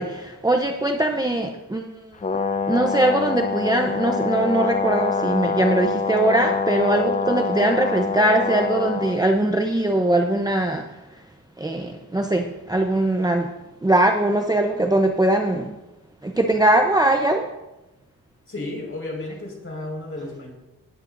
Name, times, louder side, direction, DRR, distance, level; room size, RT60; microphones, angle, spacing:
voice 1, 0.0-2.2 2.7-11.2 11.6-13.5 13.8-15.7 16.2-17.5, right 1 dB, 10° right, 3 dB, 0.8 m, -21 dB
Brass instrument, 2.2-9.2, left 4 dB, 20° left, 0.6 m, -25 dB
voice 2, 18.5-20.5, left 2 dB, 35° left, 0 dB, 5.2 m, -33 dB
19.0 x 10.5 x 2.7 m, 0.99 s
cardioid pair, 110°, 36 cm